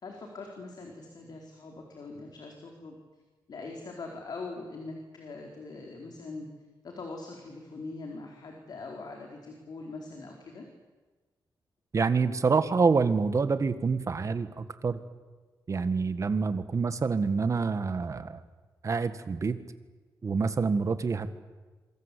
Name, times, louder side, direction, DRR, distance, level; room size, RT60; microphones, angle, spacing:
voice 1, 0.0-3.0 3.5-6.5 6.8-10.6, left 3 dB, 60° left, 2 dB, 4.2 m, -42 dB
voice 2, 11.9-15.0 15.7-18.4 18.8-19.6 20.2-21.3, right 4 dB, 40° right, 11 dB, 1.7 m, -27 dB
26.5 x 24.5 x 8.4 m, 1.3 s
wide cardioid pair, 130°, 8 cm